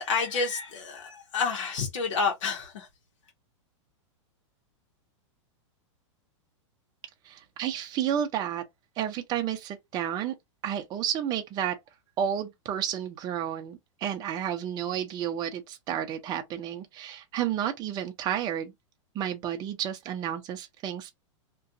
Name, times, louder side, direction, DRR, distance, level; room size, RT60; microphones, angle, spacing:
voice 1, 0.0-2.9, left 5 dB, 75° left, 0.9 m, -29 dB
voice 2, 7.2-8.6 9.0-10.3 10.6-11.8 12.2-18.7 19.1-21.1, right 10 dB, 25° right, 0.5 m, -31 dB
2.4 x 2.2 x 2.7 m
hypercardioid pair, 135°, 16 cm